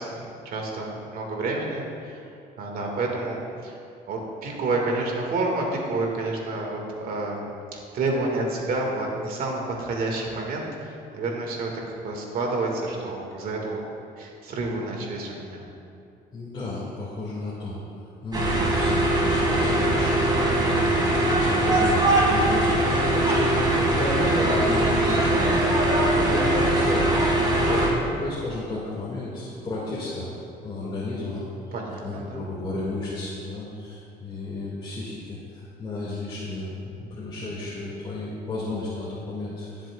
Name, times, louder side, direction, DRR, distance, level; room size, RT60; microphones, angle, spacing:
voice 1, 0.0-2.2 2.6-3.7 4.1-13.8 14.2-15.6 31.7-32.4, right 2 dB, 60° right, 0 dB, 2.1 m, -29 dB
voice 2, 16.3-17.8 18.2-30.3 30.6-31.7 32.0-39.9, left 2 dB, 30° left, -8 dB, 2.2 m, -33 dB
sound 1, 18.3-27.9, right 1 dB, 25° right, 2.3 m, -21 dB
20.0 x 7.6 x 2.5 m, 2.6 s
cardioid pair, 110°, 17 cm